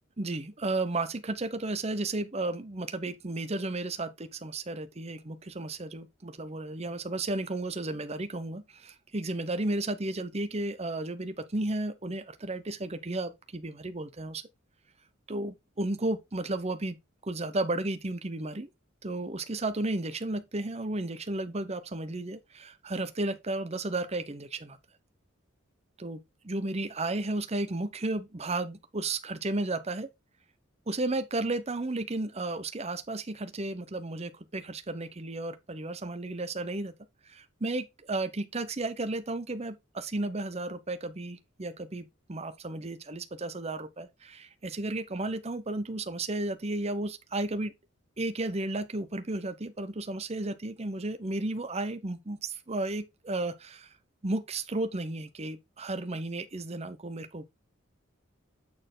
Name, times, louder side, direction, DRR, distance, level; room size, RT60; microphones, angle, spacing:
voice 1, 0.2-14.4 15.3-17.0 17.2-18.7 19.0-24.8 26.0-30.1 30.9-36.9 37.2-47.7 48.2-53.9 54.2-57.4, right 2 dB, 30° right, 0.8 m, -33 dB
8.7 x 4.4 x 3.9 m
head